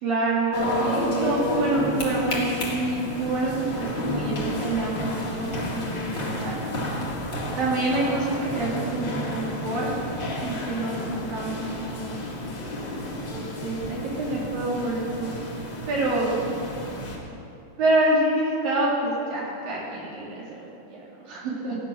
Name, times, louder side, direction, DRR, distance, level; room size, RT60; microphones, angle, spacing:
voice 1, 0.0-0.6 0.8-4.9 5.3-6.6 7.6-9.9 10.4-11.5 11.9-12.2 13.3-15.3 15.9-16.4 17.8-21.8, right 2 dB, 60° right, -5 dB, 3.9 m, -27 dB
sound 1, 0.5-17.2, left 1 dB, 40° left, 1.8 m, -31 dB
15.5 x 9.8 x 6.1 m, 2.7 s
omnidirectional pair, 4.8 m